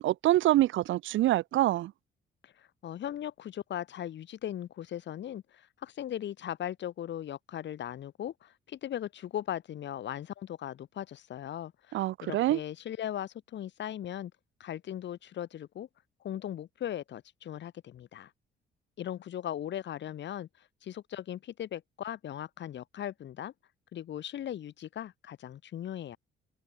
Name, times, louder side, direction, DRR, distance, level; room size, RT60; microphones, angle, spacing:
voice 1, 0.0-1.9 11.9-12.6, right 15 dB, 75° right, 0.6 m, -25 dB
voice 2, 2.4-14.3 14.6-15.9 16.2-18.3 19.0-20.5 20.8-23.5 23.9-26.2, left 11 dB, 65° left, 1.6 m, -38 dB
cardioid pair, 90°, 20 cm